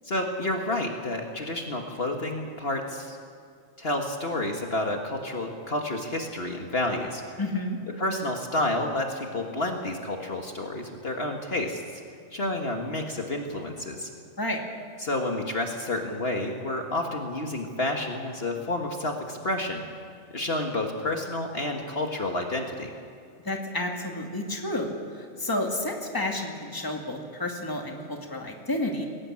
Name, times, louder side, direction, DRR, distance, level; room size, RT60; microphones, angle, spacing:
voice 1, 0.0-3.2 3.8-7.2 8.0-12.0 12.3-14.1 15.0-19.8 20.3-22.9, left 1 dB, 50° left, 2 dB, 1.8 m, -30 dB
voice 2, 7.4-7.8 14.4-14.6 23.4-29.0, left 1 dB, 15° left, 2 dB, 2.1 m, -30 dB
21.0 x 18.0 x 8.7 m, 2.3 s
omnidirectional pair, 1.4 m